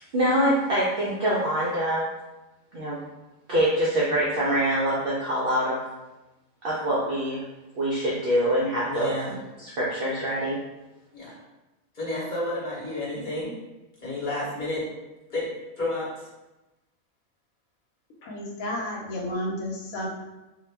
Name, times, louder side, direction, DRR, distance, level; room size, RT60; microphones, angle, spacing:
voice 1, 0.1-2.1 2.7-3.0 3.5-5.8 6.6-7.4 7.8-9.1 9.6-10.6, right 1 dB, 70° right, -6 dB, 0.5 m, -24 dB
voice 2, 8.9-9.4 11.1-11.3 11.9-13.5 14.0-14.8 15.3-15.5 15.8-16.3, left 2 dB, 40° left, -7 dB, 0.9 m, -31 dB
voice 3, 18.2-20.1, left 1 dB, 85° left, -2 dB, 1.1 m, -32 dB
2.2 x 2.2 x 3.1 m, 1.0 s
omnidirectional pair, 1.4 m